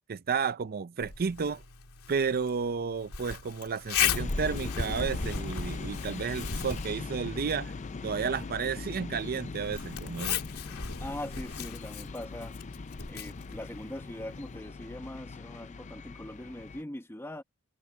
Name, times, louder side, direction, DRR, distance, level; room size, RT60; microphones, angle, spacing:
voice 1, 0.1-1.6 2.1-7.7 8.0-10.4, right 5 dB, 45° right, 0.5 m, -32 dB
Zipper (clothing), 1.0-14.6, left 7 dB, 75° left, 2.5 m, -37 dB
sound 1, 4.0-16.8, left 4 dB, 35° left, 0.4 m, -40 dB
voice 2, 11.0-12.5 13.1-17.4, left 1 dB, 10° left, 0.9 m, -41 dB
head